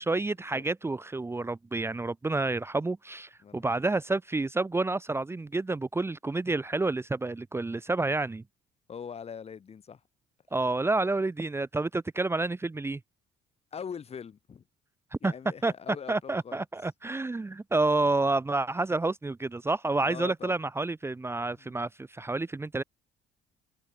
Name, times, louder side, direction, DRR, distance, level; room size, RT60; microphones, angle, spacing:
voice 1, 0.0-8.4 10.5-13.0 15.1-15.3 15.6-15.7 16.1-22.8, right 2 dB, 15° right, 1.2 m, -29 dB
voice 2, 8.9-10.0 13.7-14.6 15.2-16.6 20.0-20.6 21.5-21.7, left 7 dB, 35° left, 2.4 m, -42 dB
cardioid pair, 110°, 17 cm